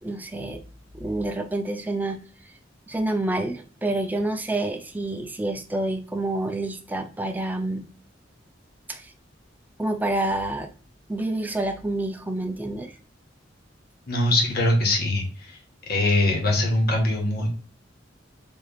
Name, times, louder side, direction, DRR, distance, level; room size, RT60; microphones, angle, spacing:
voice 1, 0.0-0.6 0.9-2.2 2.9-7.9 8.9-9.1 9.8-10.7 11.1-13.0, right 2 dB, 10° right, 4 dB, 0.5 m, -28 dB
voice 2, 14.1-15.6 15.9-17.5, left 1 dB, 55° left, 1 dB, 1.4 m, -22 dB
5.1 x 3.3 x 2.4 m, 0.38 s
head